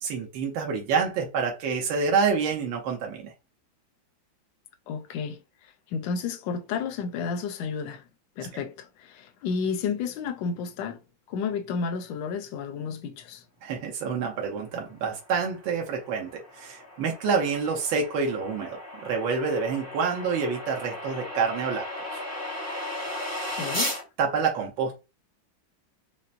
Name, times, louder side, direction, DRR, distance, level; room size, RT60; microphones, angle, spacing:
voice 1, 0.0-3.3 8.5-8.6 13.6-21.9 22.1-22.2 24.2-25.0, right 5 dB, 75° right, 1.6 m, -27 dB
voice 2, 4.9-8.0 8.4-11.0 11.3-13.4 23.5-23.9, left 5 dB, 75° left, 1.2 m, -32 dB
sound 1, 15.5-24.0, left 1 dB, 15° left, 0.7 m, -36 dB
5.6 x 2.0 x 2.5 m
omnidirectional pair, 2.2 m